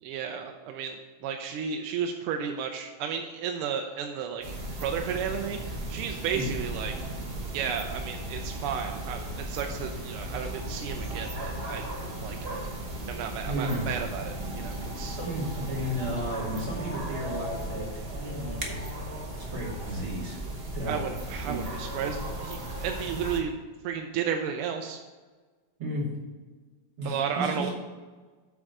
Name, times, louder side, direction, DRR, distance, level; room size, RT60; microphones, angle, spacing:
voice 1, 0.0-4.4 4.8-7.1 7.5-11.8 12.2-12.4 13.1-15.2 20.9-23.6 23.8-25.0 27.1-27.7, right 7 dB, 85° right, 4 dB, 1.6 m, -33 dB
sound 1, 4.4-23.4, right 1 dB, 35° right, 1.0 m, -36 dB
voice 2, 13.4-13.9 15.1-18.9 19.4-20.4 20.7-21.0 21.4-21.7 25.8-26.1 27.0-27.7, equal, 70° right, -7 dB, 3.3 m, -33 dB
8.8 x 3.6 x 6.5 m, 1.4 s
omnidirectional pair, 2.4 m